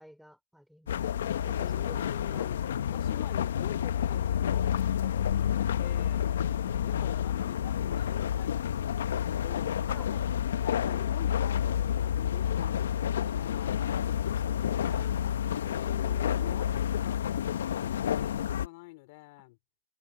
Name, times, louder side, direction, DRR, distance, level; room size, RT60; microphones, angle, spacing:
voice 1, 0.0-2.5 6.4-7.2 9.9-10.7 14.8-16.7, equal, ahead, 4.7 m, -52 dB
sound 1, 0.9-18.7, left 9 dB, 75° left, 0.8 m, -29 dB
voice 2, 1.6-2.6 2.9-5.5 5.8-6.3 6.8-9.8 10.6-15.0 15.7-17.5 17.8-19.6, left 23 dB, 45° left, 3.6 m, -47 dB
hypercardioid pair, 150°, 0 cm